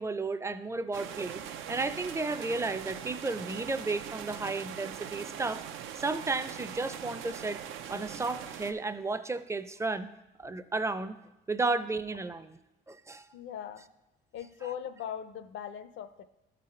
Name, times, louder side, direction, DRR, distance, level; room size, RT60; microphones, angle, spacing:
voice 1, 0.0-5.7 6.0-7.6 7.9-10.1 10.4-11.2 11.5-12.6 12.9-13.3, right 3 dB, 15° right, 12 dB, 0.4 m, -33 dB
sound 1, 0.9-8.7, right 9 dB, 85° right, 0.5 m, -41 dB
voice 2, 13.3-13.9 14.3-16.2, left 9 dB, 75° left, 12 dB, 0.5 m, -40 dB
12.0 x 4.0 x 4.3 m, 0.99 s
cardioid pair, 90°, 20 cm